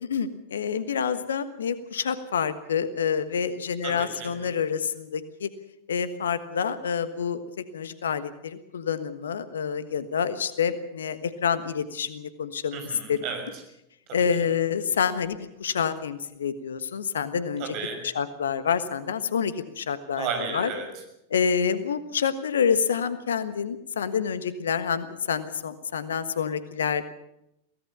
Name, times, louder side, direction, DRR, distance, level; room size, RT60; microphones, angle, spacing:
voice 1, 0.0-5.5 5.9-7.4 7.7-13.2 14.1-17.6 18.1-20.3 20.5-20.7 21.3-27.0, left 7 dB, 65° left, 13 dB, 1.3 m, -27 dB
voice 2, 3.8-4.3 12.7-13.6 14.1-14.3 17.6-18.1 20.2-21.0, right 5 dB, 45° right, 5 dB, 6.0 m, -33 dB
23.0 x 17.5 x 6.9 m, 0.81 s
figure-of-eight pair, 90°, 0 cm